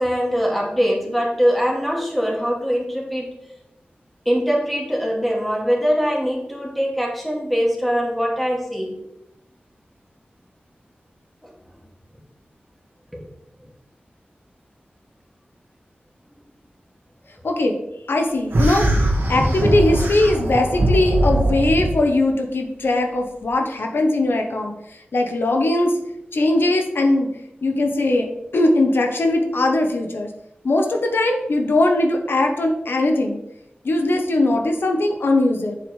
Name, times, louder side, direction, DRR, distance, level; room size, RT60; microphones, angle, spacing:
voice 1, 0.0-3.3 4.3-9.0, equal, ahead, -2 dB, 2.1 m, -22 dB
voice 2, 17.4-17.8 18.1-26.0 26.3-27.3 27.6-28.3 28.5-30.3 30.6-33.4 33.8-35.8, left 2 dB, 85° left, 3 dB, 0.9 m, -20 dB
sound 1, 18.5-21.9, right 1 dB, 85° right, 1.6 m, -20 dB
7.8 x 6.9 x 3.2 m, 0.85 s
wide cardioid pair, 80°, 4 cm